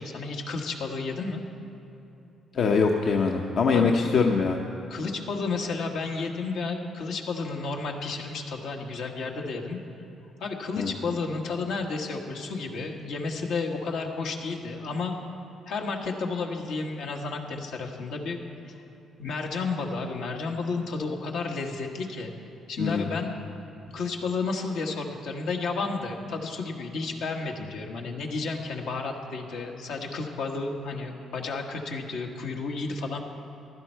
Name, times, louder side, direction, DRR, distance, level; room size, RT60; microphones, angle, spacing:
voice 1, 0.0-1.4 3.7-3.9 4.9-9.8 10.4-15.1 15.7-18.4 18.7-18.8 19.2-22.3 22.7-23.4 23.9-33.2, left 4 dB, 80° left, 1 dB, 1.3 m, -32 dB
voice 2, 2.5-4.6 10.8-10.9 22.8-23.1, left 5 dB, 60° left, 2 dB, 0.7 m, -23 dB
15.0 x 12.0 x 4.5 m, 2.9 s
cardioid pair, 90°, 0 cm